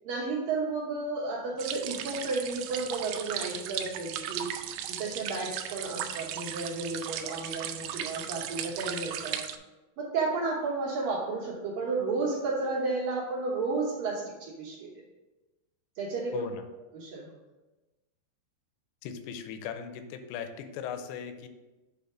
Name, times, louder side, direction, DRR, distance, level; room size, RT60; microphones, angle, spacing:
voice 1, 0.0-4.5 4.9-9.4 10.0-14.9 16.0-16.5 16.9-17.3, right 3 dB, 70° right, -5 dB, 2.2 m, -32 dB
sound 1, 1.6-9.6, right 10 dB, 85° right, 2.3 m, -36 dB
voice 2, 16.3-16.7 19.0-21.5, left 7 dB, 85° left, 8 dB, 2.7 m, -38 dB
8.0 x 3.5 x 4.9 m, 1.1 s
omnidirectional pair, 5.2 m